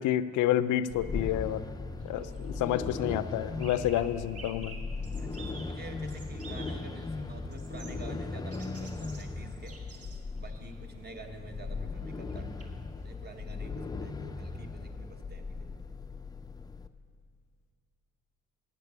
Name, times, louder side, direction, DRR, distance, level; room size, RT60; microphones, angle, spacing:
voice 1, 0.0-1.6 2.0-2.3 2.6-4.8, left 12 dB, 80° left, 14 dB, 0.5 m, -29 dB
sound 1, 0.9-16.9, left 3 dB, 15° left, 0.4 m, -38 dB
sound 2, 2.0-13.1, right 3 dB, 50° right, 1.8 m, -52 dB
voice 2, 2.1-2.5 5.2-9.8 10.3-12.5 13.0-15.8, right 3 dB, 35° right, 5 dB, 1.1 m, -48 dB
8.9 x 7.5 x 8.0 m, 2.1 s
cardioid pair, 90°, 30 cm